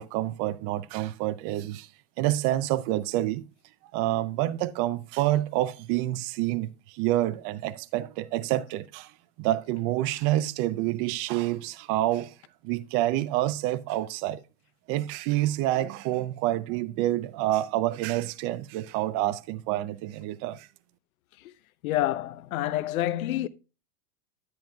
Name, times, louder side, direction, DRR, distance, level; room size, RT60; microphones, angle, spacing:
voice 1, 0.0-1.9 2.2-3.4 3.9-9.1 9.4-12.3 12.6-14.4 14.9-20.7, right 15 dB, 30° right, 0.4 m, -28 dB
voice 2, 21.8-23.5, left 14 dB, 70° left, 0.8 m, -28 dB
10.5 x 9.0 x 2.3 m
hypercardioid pair, 130°, 44 cm